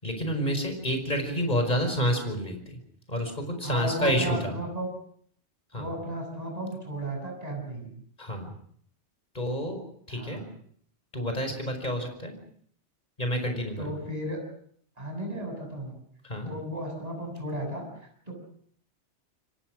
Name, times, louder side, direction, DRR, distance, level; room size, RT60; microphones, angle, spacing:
voice 1, 0.0-2.8 3.1-4.5 5.7-5.9 8.2-8.5 9.3-9.8 10.1-10.4 11.1-12.3 13.2-13.9 16.2-16.5, equal, 40° left, 6 dB, 5.3 m, -29 dB
voice 2, 3.6-4.9 5.7-7.9 10.1-10.5 13.8-14.4 15.0-16.0 16.5-17.9 18.3-18.4, right 1 dB, 35° right, 2 dB, 7.5 m, -34 dB
28.0 x 23.5 x 6.3 m, 0.62 s
omnidirectional pair, 1.2 m